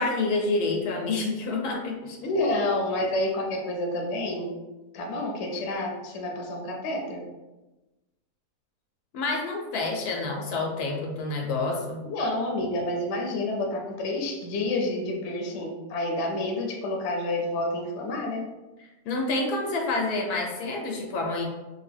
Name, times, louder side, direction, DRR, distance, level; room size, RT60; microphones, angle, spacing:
voice 1, 0.0-2.3 9.1-12.0 18.8-21.4, left 3 dB, 85° left, 1 dB, 1.2 m, -28 dB
voice 2, 2.2-4.5 4.9-7.2 12.1-18.4, left 2 dB, 60° left, 0 dB, 0.8 m, -29 dB
2.7 x 2.5 x 3.3 m, 1.1 s
omnidirectional pair, 1.6 m